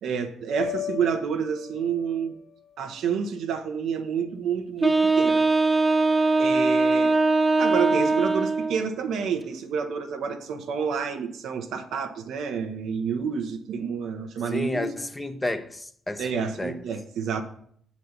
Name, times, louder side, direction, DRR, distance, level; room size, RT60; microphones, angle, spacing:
voice 1, 0.0-2.4 2.8-5.4 6.4-7.2 7.6-14.9 16.2-17.4, right 6 dB, 70° right, 0.9 m, -29 dB
sound 1, 0.6-4.9, left 7 dB, 65° left, 1.5 m, -39 dB
Wind instrument woodwind instrument, 4.8-8.9, right 3 dB, 20° right, 0.7 m, -21 dB
voice 2, 14.5-16.8, left 2 dB, 20° left, 0.7 m, -31 dB
7.6 x 4.2 x 6.6 m
hypercardioid pair, 45°, 0 cm